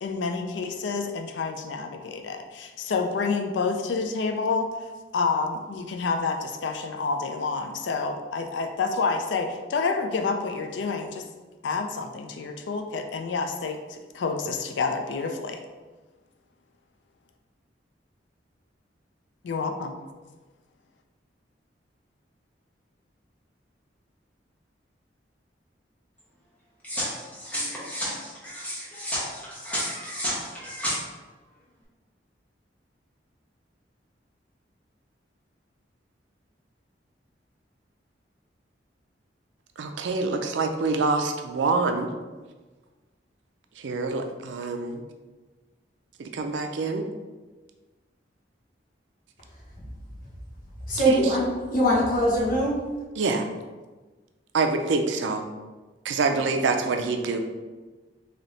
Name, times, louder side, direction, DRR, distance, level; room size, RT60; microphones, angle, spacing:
voice 1, 0.0-4.7 5.1-11.3 11.6-15.6 19.4-20.0, left 4 dB, 75° left, 6 dB, 0.4 m, -28 dB
sound 1, 26.8-31.0, equal, 10° left, 1.0 m, -31 dB
voice 2, 39.8-42.1 43.8-45.0 46.2-47.1 51.0-51.4 53.2-53.5 54.5-55.5 56.0-57.4, right 4 dB, 85° right, 6 dB, 0.4 m, -26 dB
voice 3, 50.9-52.7, equal, 50° left, -4 dB, 1.0 m, -22 dB
3.3 x 2.8 x 3.9 m, 1.3 s
head